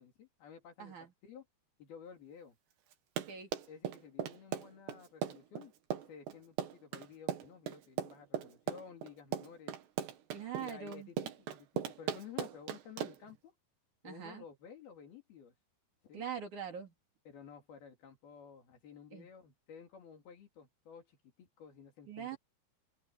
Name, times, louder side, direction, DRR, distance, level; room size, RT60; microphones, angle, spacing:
voice 1, 0.0-1.5 1.8-2.6 3.7-5.7 6.1-9.8 10.5-13.5 14.0-15.5 16.0-16.3 17.2-22.4, left 7 dB, 65° left, 4.9 m, -53 dB
Run, 2.9-13.3, right 8 dB, 85° right, 4.1 m, -39 dB
voice 2, 10.3-11.1 14.0-14.4 16.1-16.9 19.1-19.3 22.1-22.4, right 8 dB, 50° right, 3.7 m, -42 dB
open air
omnidirectional pair, 4.9 m